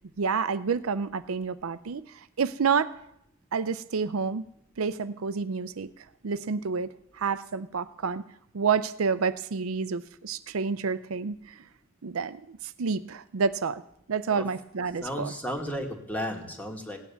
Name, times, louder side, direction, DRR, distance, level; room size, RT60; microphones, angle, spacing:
voice 1, 0.2-2.1 2.4-3.0 3.5-4.4 4.8-5.9 6.2-6.9 7.2-8.2 8.5-11.6 12.0-13.8 14.1-15.3, right 5 dB, 80° right, 13 dB, 0.6 m, -29 dB
voice 2, 15.0-17.0, equal, 10° left, 3 dB, 2.1 m, -33 dB
17.0 x 9.5 x 7.1 m, 0.75 s
head